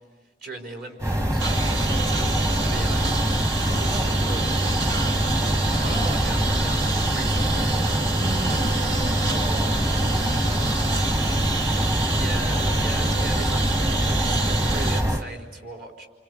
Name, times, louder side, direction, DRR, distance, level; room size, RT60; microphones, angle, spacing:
voice 1, 0.4-1.4 2.6-3.3 3.6-4.5 5.7-8.1 12.1-16.1, right 2 dB, 55° right, 1 dB, 4.2 m, -38 dB
sound 1, 1.0-15.2, equal, 20° right, 1.1 m, -24 dB
Engine, 1.4-15.0, right 3 dB, 80° right, 2.2 m, -29 dB
voice 2, 5.9-6.2 8.2-11.4, equal, 35° right, 3 dB, 1.8 m, -37 dB
29.0 x 25.0 x 8.2 m, 1.3 s
head